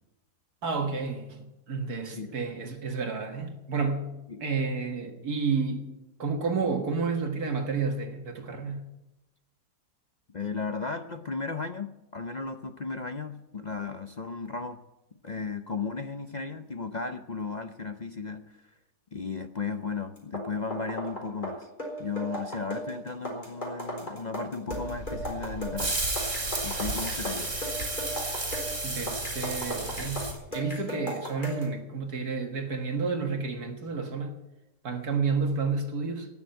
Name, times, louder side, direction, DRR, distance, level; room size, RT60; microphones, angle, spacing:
voice 1, 0.6-5.9 6.2-8.9 28.8-34.4 34.8-36.3, right 4 dB, 65° right, 4 dB, 2.2 m, -30 dB
voice 2, 2.0-2.3 4.3-4.4 10.3-14.8 15.2-18.7 19.1-21.7 22.0-26.0 26.6-27.5, left 4 dB, 60° left, 8 dB, 0.4 m, -35 dB
sound 1, 20.2-31.7, equal, 30° left, 4.1 m, -36 dB
sound 2, 24.7-30.3, right 2 dB, 45° right, 3.9 m, -33 dB
19.0 x 7.2 x 9.0 m, 0.94 s
omnidirectional pair, 1.7 m